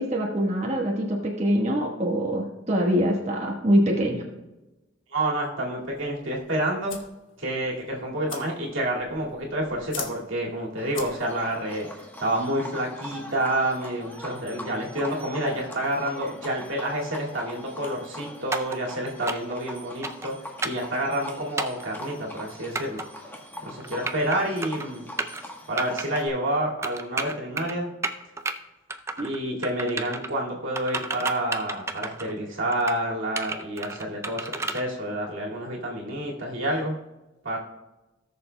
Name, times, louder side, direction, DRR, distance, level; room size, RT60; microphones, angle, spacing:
voice 1, 0.0-4.2 29.2-29.3, equal, 35° right, -1 dB, 1.2 m, -24 dB
voice 2, 5.1-7.0 7.4-20.3 20.6-23.0 23.7-25.0 25.7-27.9 29.2-37.0 37.4-37.6, right 1 dB, 90° right, -3 dB, 2.2 m, -29 dB
sound 1, 5.8-11.5, left 7 dB, 80° left, 1.2 m, -43 dB
Livestock farm animals working animals, 10.8-26.3, left 1 dB, 10° left, 1.1 m, -42 dB
sound 2, 18.5-18.8 19.3-19.6 20.0-20.3 20.6-20.9 21.6-21.8 22.8-23.0 23.8-24.4 24.6-24.9 25.2-25.4 25.8-26.1 26.8-27.7 28.0-28.5 28.9-29.4 29.6-30.3 30.8-32.3 32.7-33.0 33.4-34.8, right 3 dB, 15° right, 0.4 m, -31 dB
18.0 x 6.7 x 2.2 m, 1.0 s
head